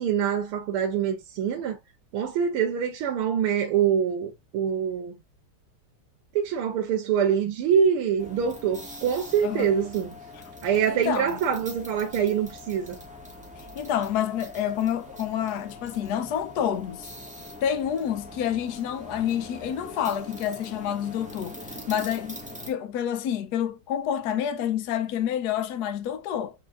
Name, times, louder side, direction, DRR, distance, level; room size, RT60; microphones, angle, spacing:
voice 1, 0.0-1.8 2.1-5.2 6.4-10.2 10.6-13.0, right 8 dB, 85° right, 1.8 m, -25 dB
sound 1, 8.2-22.7, left 1 dB, 10° right, 0.3 m, -43 dB
voice 2, 10.9-11.4 13.8-17.1 17.6-26.5, left 9 dB, 70° left, 0.9 m, -28 dB
4.6 x 4.1 x 2.5 m
omnidirectional pair, 2.4 m